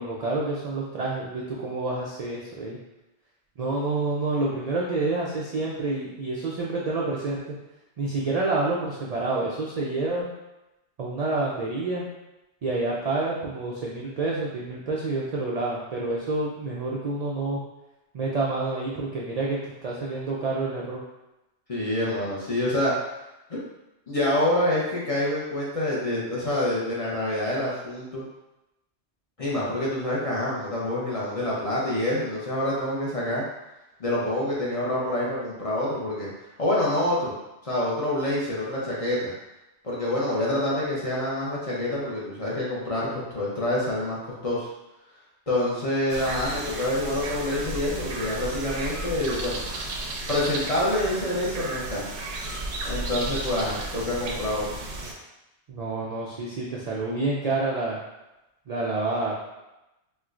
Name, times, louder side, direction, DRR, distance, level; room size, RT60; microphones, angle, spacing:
voice 1, 0.0-2.8 3.6-7.5 8.0-10.3 11.0-12.1 12.6-17.6 18.1-21.0 55.7-58.0 58.7-59.3, right 2 dB, 65° right, -4 dB, 0.4 m, -28 dB
voice 2, 21.7-22.9 24.1-28.2 29.4-33.4 34.0-36.3 36.6-37.3 37.6-39.3 39.8-44.2 44.4-44.7 45.5-49.6 50.3-52.0 52.8-54.8, left 1 dB, 40° left, -6 dB, 0.5 m, -27 dB
sound 1, 46.1-55.1, right 2 dB, 80° right, 0.9 m, -33 dB
4.3 x 2.1 x 2.4 m, 0.97 s
omnidirectional pair, 1.2 m